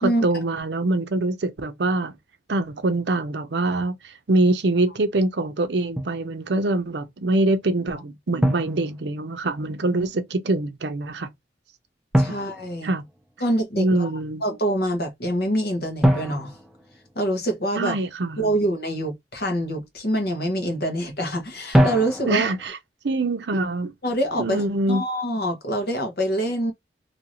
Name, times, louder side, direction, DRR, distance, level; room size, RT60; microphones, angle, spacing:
voice 1, 0.0-2.1 2.5-11.3 12.3-12.4 12.8-13.0 13.8-14.4 17.8-18.6 22.3-22.8 23.0-23.9 24.4-25.0, right 2 dB, 75° right, 0.6 m, -24 dB
Drum, 6.0-6.2 8.4-9.6 12.1-13.5 16.0-17.7 21.7-22.7, equal, 5° right, 0.4 m, -24 dB
voice 2, 12.2-12.9 13.4-14.1 14.4-16.5 17.1-18.0 18.4-22.5 24.0-26.7, right 1 dB, 55° left, 1.0 m, -25 dB
2.8 x 2.5 x 2.9 m
head